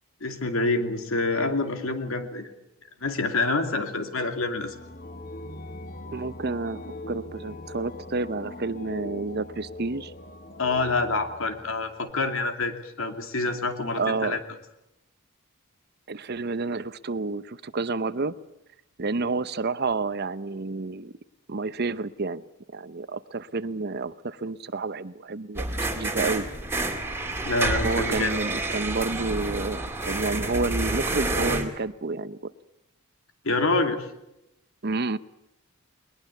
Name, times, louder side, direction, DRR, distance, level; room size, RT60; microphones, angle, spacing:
voice 1, 0.2-2.5 3.0-4.8 10.6-14.4 27.4-28.4 33.4-34.1, left 3 dB, 70° left, 7 dB, 2.6 m, -27 dB
sound 1, 4.6-12.1, left 1 dB, 40° left, 1.4 m, -41 dB
voice 2, 6.1-10.1 14.0-14.4 16.1-18.3 19.0-21.1 21.5-22.4 22.7-26.5 27.8-32.5 34.8-35.2, right 3 dB, 50° right, 15 dB, 0.8 m, -30 dB
sound 2, 25.5-31.6, right 2 dB, 10° right, 2.4 m, -29 dB
21.0 x 21.0 x 8.3 m, 0.86 s
head